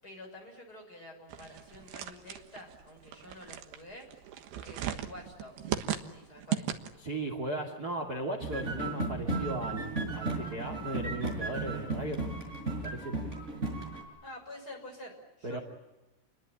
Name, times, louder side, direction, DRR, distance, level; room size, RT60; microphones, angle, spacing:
voice 1, 0.0-4.1 4.6-6.7 14.2-15.6, left 1 dB, 20° left, 2 dB, 6.6 m, -48 dB
sound 1, 1.3-7.1, right 10 dB, 65° right, 2.7 m, -37 dB
voice 2, 7.0-12.2 12.8-13.1 15.4-15.6, right 1 dB, 35° right, 4 dB, 1.5 m, -36 dB
sound 2, 8.4-14.0, right 2 dB, 15° right, 5.5 m, -35 dB
29.0 x 22.5 x 8.6 m, 1.1 s
omnidirectional pair, 5.9 m